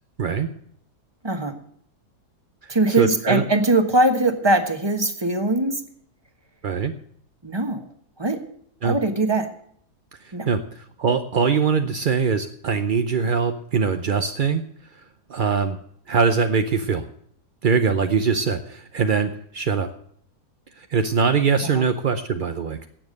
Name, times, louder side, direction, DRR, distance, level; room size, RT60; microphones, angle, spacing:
voice 1, 1.2-1.5 2.7-5.8 7.4-7.8 8.2-8.4 8.8-9.5 10.3-10.5 21.7-21.8, right 2 dB, 15° right, 7 dB, 1.2 m, -21 dB
voice 2, 2.6-3.4 6.6-6.9 8.8-9.0 10.2-14.6 15.3-15.8 16.1-17.1 17.6-19.9 20.8-22.9, right 5 dB, 55° right, 8 dB, 0.5 m, -22 dB
17.5 x 7.2 x 6.4 m, 0.66 s
omnidirectional pair, 1.8 m